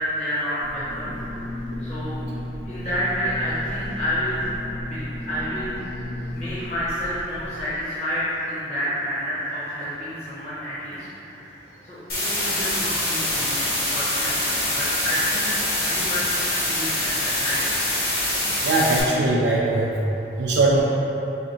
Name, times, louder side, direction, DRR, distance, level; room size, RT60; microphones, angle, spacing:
voice 1, 0.1-1.1 1.8-2.2 2.6-4.5 4.8-5.8 6.3-12.0 12.2-13.7 13.9-15.5 15.8-16.3 16.7-17.6, equal, 35° left, -12 dB, 0.6 m, -29 dB
sound 1, 0.6-7.7, left 1 dB, 80° left, 0.9 m, -34 dB
sound 2, 12.1-19.0, left 1 dB, 60° left, 1.0 m, -24 dB
voice 2, 18.6-20.0 20.4-20.8, right 2 dB, 75° right, -4 dB, 0.4 m, -20 dB
4.9 x 2.6 x 2.8 m, 3.0 s
head